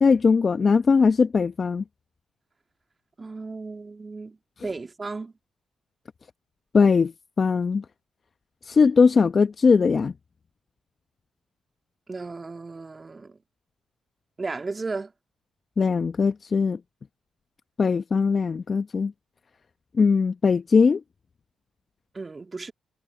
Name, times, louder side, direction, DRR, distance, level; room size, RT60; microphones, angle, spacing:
voice 1, 0.0-1.8 6.7-7.1 7.4-7.8 8.6-10.1 15.8-16.8 17.8-19.1 19.9-21.0, left 5 dB, 50° left, 0.9 m, -20 dB
voice 2, 3.2-5.3 12.1-13.4 14.4-15.1 22.1-22.7, right 3 dB, 35° right, 2.7 m, -35 dB
hypercardioid pair, 45°, 0 cm